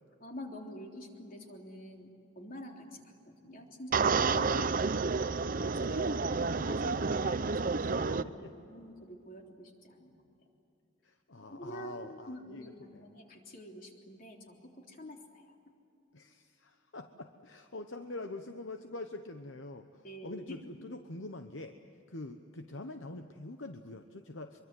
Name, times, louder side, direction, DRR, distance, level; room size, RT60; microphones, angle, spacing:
voice 1, 0.2-4.5 5.5-10.2 11.4-14.6 14.9-15.5 20.0-20.6, equal, 45° left, 1 dB, 3.5 m, -47 dB
sound 1, 3.9-8.2, right 4 dB, 45° right, 0.6 m, -30 dB
voice 2, 4.3-4.7 7.8-7.9 8.2-8.5 11.0-13.1 16.1-21.8 22.1-24.6, left 2 dB, 65° left, 7 dB, 1.0 m, -45 dB
25.0 x 23.5 x 7.8 m, 2.9 s
head